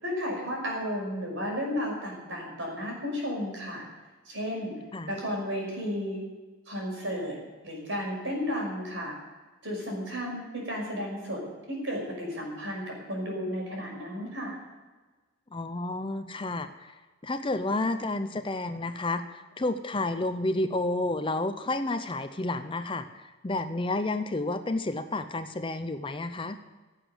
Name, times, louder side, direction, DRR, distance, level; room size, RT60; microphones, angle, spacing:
voice 1, 0.0-3.8 4.3-4.7 5.1-6.2 6.7-7.4 7.6-9.1 9.6-11.4 11.7-14.6, equal, 65° right, -1 dB, 5.8 m, -33 dB
voice 2, 15.5-16.9 17.2-23.1 23.4-26.6, left 2 dB, 25° left, 9 dB, 0.6 m, -30 dB
16.5 x 8.2 x 7.9 m, 1.3 s
head